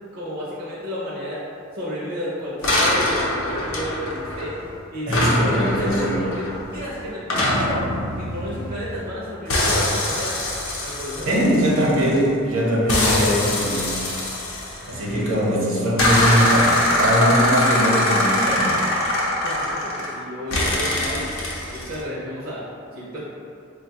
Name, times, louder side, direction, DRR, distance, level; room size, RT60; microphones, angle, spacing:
voice 1, 0.1-1.4 1.7-4.5 4.9-5.1 5.5-7.9 8.2-10.4 10.8-11.3 11.7-11.9 19.4-21.4 21.7-22.7 22.9-23.2, equal, 50° right, -8 dB, 0.5 m, -32 dB
sound 1, 2.6-4.7 5.1-9.1 9.5-12.3 12.9-15.3 16.0-20.2 20.5-22.0, left 1 dB, 85° left, 0.6 m, -23 dB
voice 2, 5.1-6.2 11.3-14.0 14.9-18.8, equal, 70° right, -5 dB, 0.8 m, -21 dB
3.8 x 2.2 x 2.7 m, 2.4 s
head